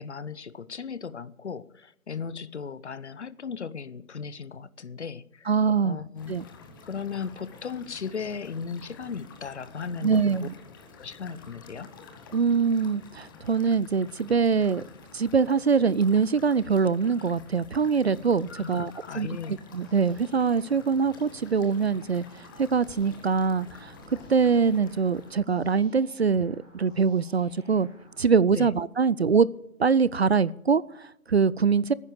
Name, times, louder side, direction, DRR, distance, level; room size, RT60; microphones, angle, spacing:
voice 1, 0.0-5.5 5.8-6.3 6.8-10.5 11.0-11.9 18.5-19.6 28.5-28.7, left 6 dB, 55° left, 0.8 m, -36 dB
voice 2, 5.5-6.0 6.3-6.4 10.0-10.5 12.3-14.8 15.1-23.9 24.3-27.9 28.2-29.5 29.8-31.9, right 5 dB, 50° right, 0.5 m, -24 dB
sound 1, 6.2-25.4, left 4 dB, 15° left, 1.0 m, -50 dB
sound 2, 19.7-28.2, right 1 dB, 10° right, 5.2 m, -56 dB
16.5 x 9.7 x 6.8 m
figure-of-eight pair, 145°, 41 cm